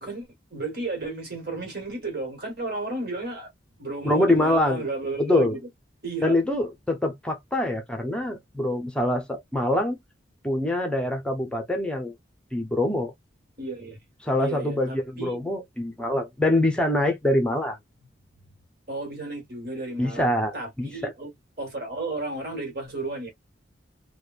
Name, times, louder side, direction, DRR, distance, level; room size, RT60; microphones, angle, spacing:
voice 1, 0.0-3.5 3.8-5.7 6.0-6.4 13.6-14.0 14.4-15.4 18.9-21.3 21.6-23.3, right 2 dB, 55° right, 1.5 m, -33 dB
voice 2, 4.0-4.8 5.2-5.6 6.2-10.0 10.4-12.1 12.5-13.1 14.2-17.8 20.0-20.9, left 1 dB, 5° left, 0.6 m, -24 dB
3.0 x 2.2 x 2.4 m
head